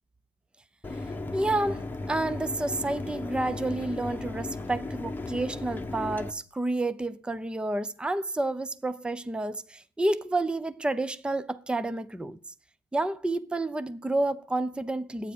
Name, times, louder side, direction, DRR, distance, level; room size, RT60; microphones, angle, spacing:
Mechanisms, 0.8-6.3, left 2 dB, 10° left, 1.1 m, -36 dB
voice 1, 1.3-12.4 12.9-15.3, right 2 dB, 5° right, 0.6 m, -30 dB
12.5 x 9.1 x 6.7 m
cardioid pair, 110°, 17 cm